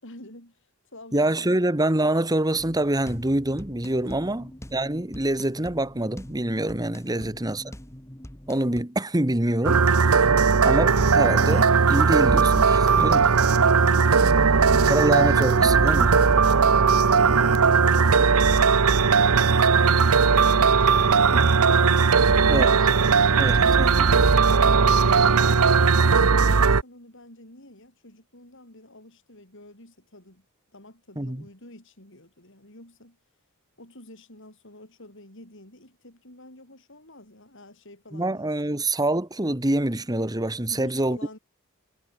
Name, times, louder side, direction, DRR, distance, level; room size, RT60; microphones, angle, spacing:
voice 1, 0.0-1.6 4.0-4.5 7.1-7.6 13.4-15.5 16.4-23.5 24.5-30.5 30.7-33.2 33.8-38.8 40.7-41.4, left 1 dB, 60° left, 7.4 m, -48 dB
voice 2, 1.1-7.6 8.5-9.8 10.6-13.3 14.8-16.2 22.5-22.7 23.4-24.1 31.2-31.4 38.1-41.2, right 1 dB, 15° right, 1.5 m, -25 dB
sound 1, 2.6-8.8, equal, 15° left, 1.5 m, -43 dB
sound 2, 9.6-26.8, right 5 dB, 80° right, 0.9 m, -18 dB
head